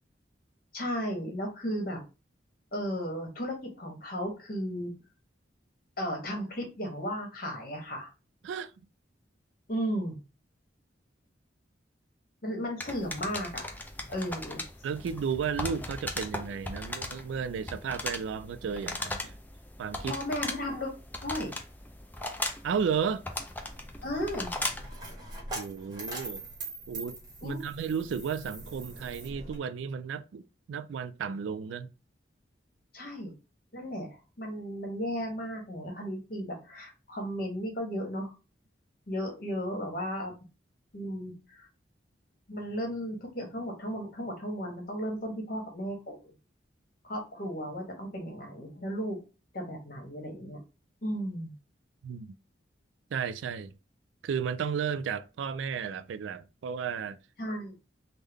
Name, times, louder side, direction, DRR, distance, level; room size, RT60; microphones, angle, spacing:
voice 1, 0.7-2.0 2.7-4.9 6.0-8.1 9.7-10.2 12.4-13.8 14.1-14.6 20.1-20.9 21.2-21.5 24.0-24.5 27.4-27.6 32.9-33.3 33.7-38.3 39.1-40.3 40.9-41.7 42.5-46.3 47.0-49.2 49.5-50.6 51.0-51.5 57.4-57.7, equal, 50° left, 1.2 m, -35 dB
sound 1, 12.8-24.9, left 2 dB, 10° left, 0.4 m, -38 dB
voice 2, 14.8-19.3 19.8-20.1 22.6-23.2 25.5-26.4 26.9-30.4 30.7-31.9 52.0-52.3 53.1-53.7 54.2-57.2, right 6 dB, 80° right, 0.3 m, -33 dB
Coin (dropping), 23.5-29.6, right 2 dB, 20° right, 1.1 m, -42 dB
3.6 x 2.1 x 3.4 m
head